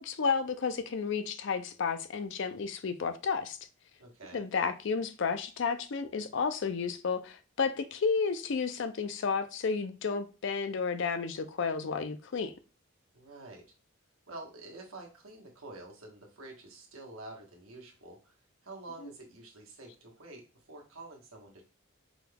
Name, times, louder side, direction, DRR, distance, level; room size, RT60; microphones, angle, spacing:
voice 1, 0.0-3.6 4.3-12.5 19.0-19.1, left 5 dB, 55° left, 0.4 m, -32 dB
voice 2, 4.0-4.4 13.1-13.7 14.3-18.3 18.6-20.4 20.7-21.6, right 2 dB, 80° right, 1.3 m, -48 dB
4.8 x 2.3 x 3.3 m
head